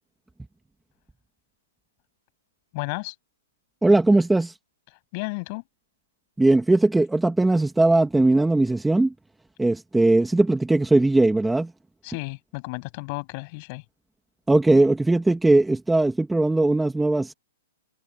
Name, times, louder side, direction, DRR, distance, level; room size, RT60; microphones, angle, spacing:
voice 1, 2.7-3.1 5.1-5.6 12.0-13.8, left 29 dB, 35° left, 8.0 m, -32 dB
voice 2, 3.8-4.5 6.4-9.1 9.6-11.7 14.5-17.3, right 2 dB, 5° right, 2.1 m, -19 dB
hypercardioid pair, 155°, 0 cm